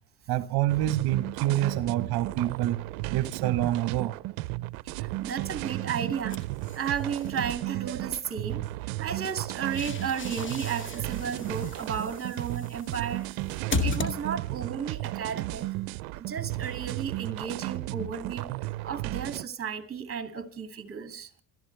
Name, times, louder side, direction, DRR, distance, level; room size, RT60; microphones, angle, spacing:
voice 1, 0.3-2.8 3.1-4.2, right 13 dB, 60° right, 1.1 m, -27 dB
sound 1, 0.7-19.5, right 18 dB, 85° right, 0.6 m, -34 dB
voice 2, 4.8-6.4 6.7-13.3 13.8-15.7 16.1-18.5 18.8-21.3, right 7 dB, 30° right, 2.6 m, -34 dB
sound 2, 6.3-7.4 9.3-14.7, left 4 dB, 30° left, 2.1 m, -36 dB
28.5 x 14.0 x 3.4 m
supercardioid pair, 90°, 41 cm